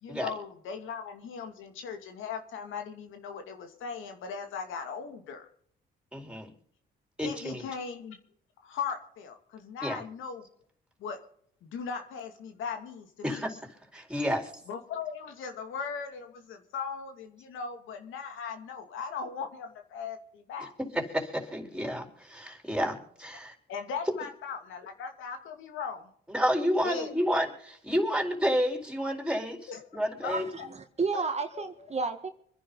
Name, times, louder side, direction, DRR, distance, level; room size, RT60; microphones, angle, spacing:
voice 1, 0.0-5.5 7.2-8.2 8.6-10.5 11.0-11.2 11.6-13.4 14.7-20.7 23.7-26.1 26.8-27.1 29.7-29.8 30.2-30.7 31.5-31.6, left 6 dB, 85° left, 5 dB, 2.5 m, -38 dB
voice 2, 6.1-6.5 7.2-7.6 9.8-10.0 13.2-13.6 13.9-14.5 20.8-23.6 26.3-30.5, equal, 5° right, 3 dB, 4.3 m, -30 dB
voice 3, 30.3-32.3, right 4 dB, 35° right, 7 dB, 1.9 m, -32 dB
26.0 x 10.5 x 4.0 m, 0.63 s
cardioid pair, 90°, 20 cm